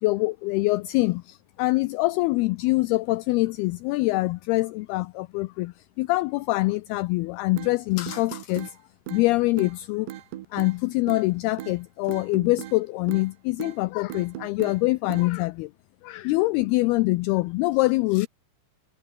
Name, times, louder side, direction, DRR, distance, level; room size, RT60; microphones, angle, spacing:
voice 1, 0.0-8.8 9.1-10.1 10.5-15.7 16.0-18.3, left 21 dB, 80° left, 2.3 m, -24 dB
sound 1, 7.6-7.7 8.1-8.7 9.1-9.2 9.6-9.7 10.1-10.7 11.1-11.3 11.6-11.7 12.1-12.8 13.1-13.3 13.6-13.8 14.1-14.8 15.1-15.3, right 14 dB, 80° right, 3.4 m, -38 dB
omnidirectional pair, 4.9 m